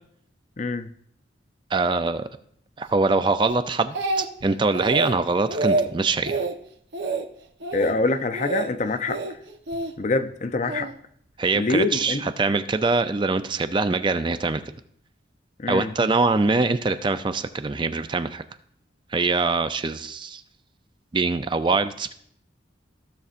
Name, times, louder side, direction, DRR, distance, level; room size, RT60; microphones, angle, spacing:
voice 1, 0.6-0.9 7.7-9.2 10.0-10.9 11.6-12.2 15.6-15.9, left 3 dB, 40° left, 0.5 m, -25 dB
voice 2, 1.7-2.3 2.8-6.4 11.4-14.6 15.7-18.4 19.1-20.4 21.1-22.1, right 3 dB, 25° right, 0.4 m, -23 dB
Speech, 3.5-4.5 4.7-5.1 5.5-5.9 6.2-6.5 6.9-7.2 7.6-7.9 8.3-8.7 9.1-9.9 10.7-10.9, right 2 dB, 65° right, 0.9 m, -27 dB
15.5 x 6.6 x 2.5 m
head